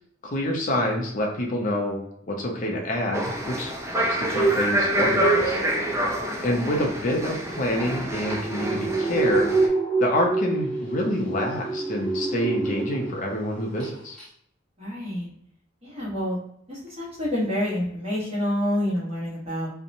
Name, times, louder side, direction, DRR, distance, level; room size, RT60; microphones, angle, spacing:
voice 1, 0.2-2.0 2.3-5.6 6.4-9.5 10.0-14.2, left 1 dB, 40° left, 0 dB, 0.5 m, -27 dB
sound 1, 3.1-9.7, equal, 15° right, 0.4 m, -27 dB
sound 2, 4.0-13.3 13.6-13.9 14.2-14.3, right 3 dB, 5° left, 1.0 m, -27 dB
voice 2, 14.8-15.3 15.8-16.4 16.7-19.7, left 1 dB, 35° right, -5 dB, 1.1 m, -28 dB
2.8 x 2.1 x 2.6 m, 0.70 s
head